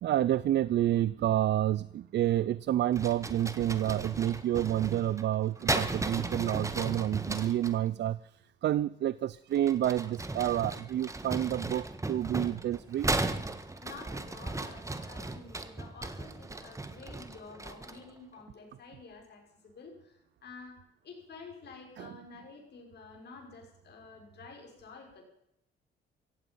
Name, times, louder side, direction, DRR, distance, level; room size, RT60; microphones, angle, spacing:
voice 1, 0.0-13.1 22.0-22.1, right 12 dB, 60° right, 18 dB, 0.5 m, -29 dB
sound 1, 2.9-7.8 9.5-18.1, right 2 dB, 15° right, 1.6 m, -36 dB
voice 2, 13.8-25.2, left 4 dB, 60° left, 2 dB, 6.1 m, -50 dB
16.5 x 16.0 x 5.6 m, 0.79 s
cardioid pair, 90°, 20 cm